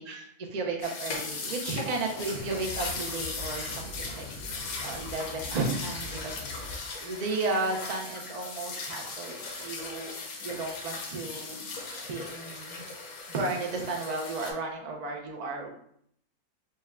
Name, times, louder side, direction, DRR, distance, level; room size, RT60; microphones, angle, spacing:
voice 1, 0.0-4.2 4.8-11.6 12.1-12.8 13.3-15.7, right 3 dB, 90° right, 1 dB, 0.3 m, -34 dB
sound 1, 0.8-14.5, left 3 dB, 75° left, 1.1 m, -38 dB
sound 2, 2.4-6.8, left 3 dB, 55° left, 0.7 m, -43 dB
4.3 x 2.2 x 3.5 m, 0.69 s
omnidirectional pair, 1.5 m